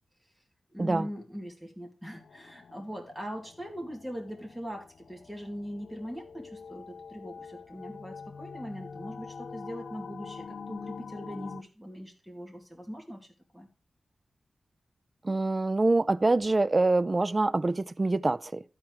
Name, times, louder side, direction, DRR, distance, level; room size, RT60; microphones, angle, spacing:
voice 1, 0.7-13.3 13.5-13.7, equal, 5° right, 2.3 m, -41 dB
sound 1, 2.1-11.6, left 5 dB, 70° left, 0.4 m, -45 dB
voice 2, 15.2-18.6, right 2 dB, 30° right, 0.4 m, -25 dB
13.0 x 4.5 x 4.7 m
wide cardioid pair, 100°, 0 cm